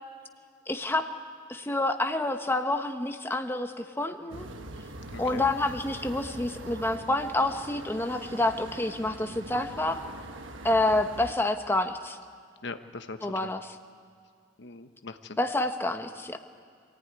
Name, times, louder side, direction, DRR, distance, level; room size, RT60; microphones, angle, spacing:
voice 1, 0.7-1.1 1.5-4.5 5.2-10.0 10.6-12.2 13.2-13.6 15.4-16.4, left 2 dB, 10° left, 6 dB, 1.0 m, -28 dB
sound 1, 4.3-11.3, right 2 dB, 85° right, 1.3 m, -43 dB
voice 2, 5.1-5.5 12.6-13.5 14.6-15.4, left 3 dB, 65° left, 8 dB, 1.0 m, -41 dB
24.5 x 15.0 x 9.6 m, 2.2 s
head